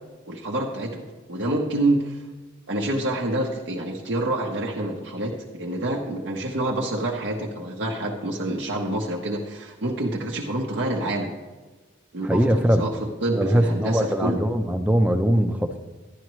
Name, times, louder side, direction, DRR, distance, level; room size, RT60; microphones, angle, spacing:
voice 1, 0.3-2.2 2.7-11.3 12.1-12.9 13.2-14.4, right 1 dB, 65° right, -2 dB, 0.9 m, -27 dB
voice 2, 12.2-12.8 13.3-15.8, equal, 5° right, 7 dB, 0.5 m, -21 dB
11.5 x 10.5 x 3.1 m, 1.3 s
head